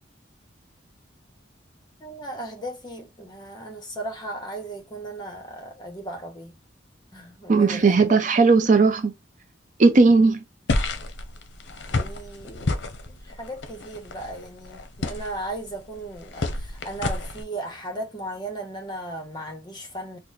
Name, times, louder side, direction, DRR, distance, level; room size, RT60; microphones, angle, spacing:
voice 1, 2.0-6.5 7.1-8.0 11.9-12.7 13.1-20.2, right 1 dB, 25° left, 1.0 m, -36 dB
voice 2, 7.5-9.1 9.8-10.4, right 4 dB, 40° right, 0.5 m, -17 dB
sound 1, 10.7-17.4, left 2 dB, 65° left, 0.7 m, -30 dB
3.9 x 2.1 x 3.1 m
head